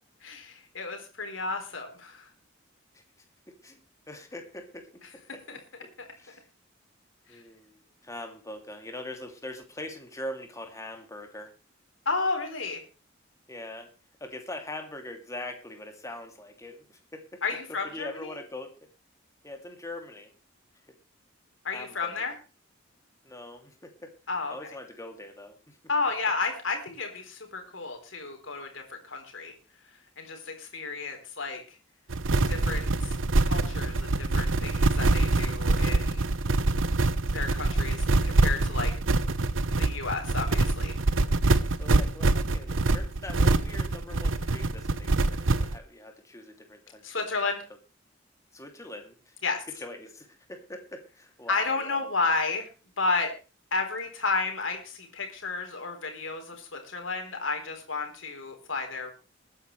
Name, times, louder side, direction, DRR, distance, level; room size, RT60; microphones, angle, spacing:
voice 1, 0.2-2.3 5.5-5.6 7.3-7.4 12.1-12.8 17.4-18.4 21.6-22.3 24.3-24.6 25.9-29.5 30.2-31.6 32.5-33.2 33.4-36.2 37.3-38.0 38.2-38.9 39.8-41.0 47.0-47.6 49.4-49.6 51.5-52.7 53.0-53.3 53.7-59.1, left 4 dB, 80° left, 4 dB, 4.0 m, -32 dB
voice 2, 4.1-4.9 5.1-6.5 7.3-11.5 13.5-13.9 14.2-17.4 17.7-18.8 19.4-20.3 21.7-22.3 23.2-24.1 24.5-25.8 41.7-47.3 48.5-49.3 49.7-52.1, left 1 dB, 15° left, 4 dB, 2.7 m, -42 dB
sound 1, 32.1-45.8, right 2 dB, 85° right, 0.9 m, -25 dB
21.5 x 9.8 x 3.3 m, 0.33 s
head